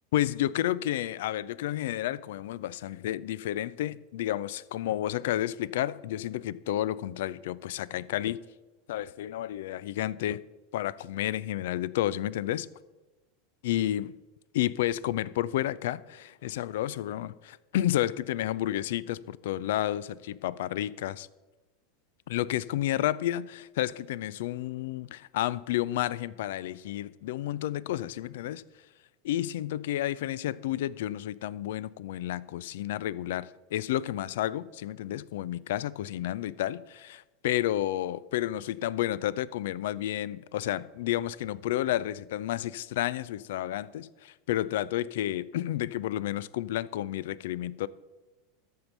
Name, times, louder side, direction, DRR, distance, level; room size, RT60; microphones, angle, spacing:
voice 1, 0.1-8.4 8.9-10.4 10.7-12.7 13.6-14.1 14.5-21.3 22.3-28.6 29.2-47.9, left 13 dB, 65° left, 0.4 m, -31 dB
13.5 x 5.5 x 6.6 m
figure-of-eight pair, 85°, 0 cm